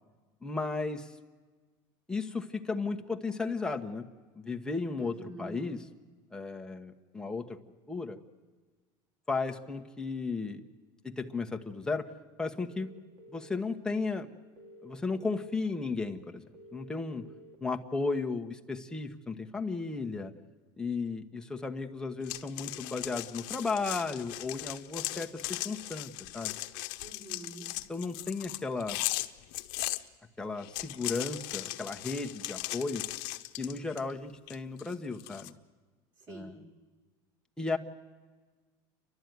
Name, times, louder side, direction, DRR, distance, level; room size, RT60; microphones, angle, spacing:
voice 1, 0.4-1.1 2.1-4.1 4.4-5.8 6.3-7.6 7.9-8.2 9.3-10.7 11.0-12.1 12.4-12.9 13.3-14.3 14.8-16.4 16.7-17.3 17.6-20.3 20.8-26.6 27.9-29.0 30.4-33.0 33.6-35.5 36.3-36.5 37.6-37.8, left 4 dB, 5° left, 3 dB, 1.2 m, -34 dB
voice 2, 5.0-5.7 27.0-27.7 36.2-36.6, right 2 dB, 40° right, 2 dB, 5.1 m, -46 dB
sound 1, 12.7-13.6 14.6-15.6 16.5-17.5, equal, 60° right, 2.6 m, -52 dB
sound 2, 22.2-30.0 30.6-34.1 34.5-35.5, left 19 dB, 70° left, 0.9 m, -38 dB
30.0 x 12.0 x 9.4 m, 1.4 s
cardioid pair, 145°, 11 cm